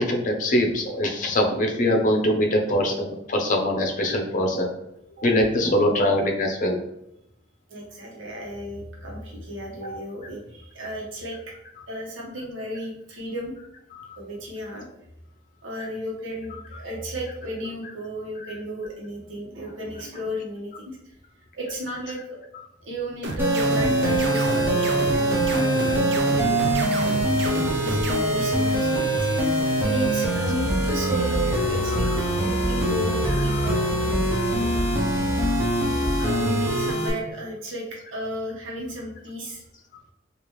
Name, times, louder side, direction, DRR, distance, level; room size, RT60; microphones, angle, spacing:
voice 1, 0.0-4.7 5.2-6.8 13.9-14.2 18.4-18.6 31.9-32.3 33.5-33.7, left 1 dB, 40° left, 1 dB, 0.6 m, -23 dB
voice 2, 7.7-11.4 11.9-13.5 14.2-14.9 15.6-21.0 21.5-22.4 22.8-26.6 27.4-27.5 27.8-32.1 32.4-34.7 36.2-39.6, equal, 80° right, -3 dB, 1.0 m, -34 dB
sound 1, 23.2-28.2, right 3 dB, 60° right, 0.4 m, -31 dB
sound 2, 23.4-37.1, right 1 dB, 10° right, 0.6 m, -23 dB
3.4 x 2.5 x 3.0 m, 0.81 s
head